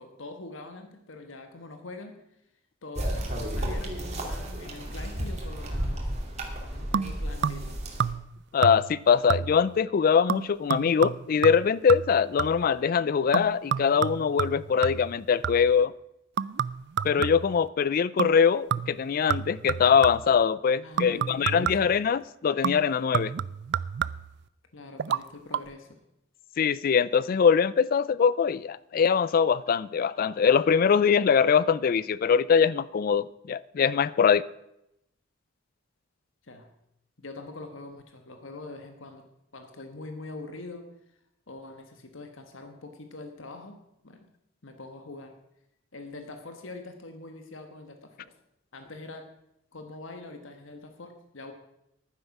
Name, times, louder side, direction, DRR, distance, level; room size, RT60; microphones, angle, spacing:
voice 1, 0.0-2.2 2.8-6.1 6.7-7.8 20.8-21.9 24.7-26.0 36.4-36.7 37.2-39.2 39.5-40.9 41.5-44.3 44.6-45.3 45.9-48.2 48.7-49.3 49.7-51.5, left 2 dB, 80° left, 1.4 m, -43 dB
sound 1, 3.0-8.1, equal, 35° right, 2.4 m, -32 dB
sound 2, 6.9-7.7 8.0-8.4 8.6-9.0 9.3-9.7 10.3-12.7 13.3-15.8 16.4-17.6 18.2-18.4 18.7-20.4 21.0-22.0 22.6-24.4 25.0-25.2 25.5-25.6, right 8 dB, 60° right, 0.3 m, -30 dB
voice 2, 8.5-15.9 17.0-23.3 26.6-34.4, left 6 dB, 45° left, 0.3 m, -23 dB
11.5 x 9.6 x 5.9 m
head